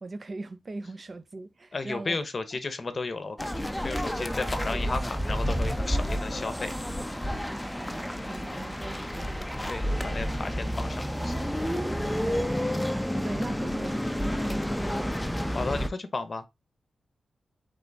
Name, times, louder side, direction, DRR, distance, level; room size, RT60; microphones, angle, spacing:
voice 1, 0.0-2.2 7.8-9.7 10.0-10.2 12.0-15.3, right 2 dB, 40° right, 0.5 m, -41 dB
voice 2, 1.7-6.7 9.7-11.3 15.5-16.5, left 3 dB, 45° left, 0.7 m, -34 dB
sound 1, 3.4-15.9, equal, 5° left, 0.5 m, -30 dB
3.8 x 3.7 x 3.4 m
cardioid pair, 75°, 0 cm